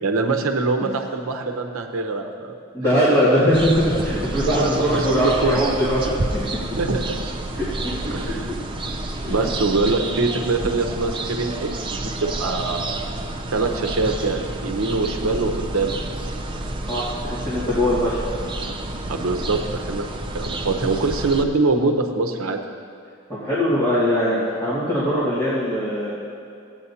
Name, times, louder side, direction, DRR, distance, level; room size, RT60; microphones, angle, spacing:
voice 1, 0.0-2.5 4.6-5.6 6.7-7.2 8.1-8.5 9.3-12.8 13.5-16.0 19.1-20.1 20.3-22.6, right 3 dB, 85° right, 4 dB, 0.8 m, -23 dB
voice 2, 2.7-6.0 7.6-7.7 9.2-9.3 16.9-18.2 23.3-26.1, equal, 15° left, -13 dB, 2.0 m, -21 dB
sound 1, 3.5-21.4, right 2 dB, 25° right, 0.5 m, -29 dB
15.5 x 8.6 x 2.8 m, 2.4 s
head